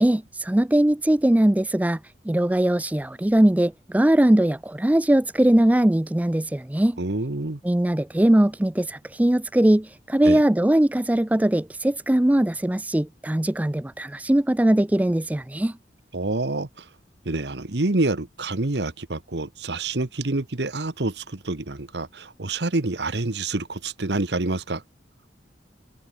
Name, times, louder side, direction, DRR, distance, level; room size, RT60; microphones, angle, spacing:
voice 1, 0.0-2.0 2.3-7.0 7.6-15.7, right 1 dB, 10° right, 0.4 m, -20 dB
voice 2, 7.0-7.6 10.2-10.4 16.1-16.7 17.2-24.8, right 2 dB, 70° right, 1.3 m, -27 dB
head